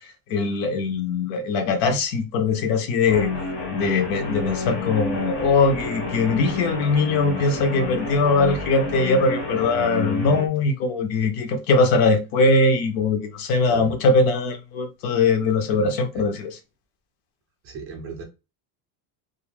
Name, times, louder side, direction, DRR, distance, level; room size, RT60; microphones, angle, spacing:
voice 1, 0.3-3.3 3.7-16.6, left 3 dB, 65° left, 0.7 m, -21 dB
Guitar, 3.1-10.5, left 3 dB, 30° left, 0.6 m, -29 dB
voice 2, 17.6-18.2, right 4 dB, 30° right, 0.4 m, -36 dB
2.4 x 2.0 x 3.1 m
cardioid pair, 160°, 47 cm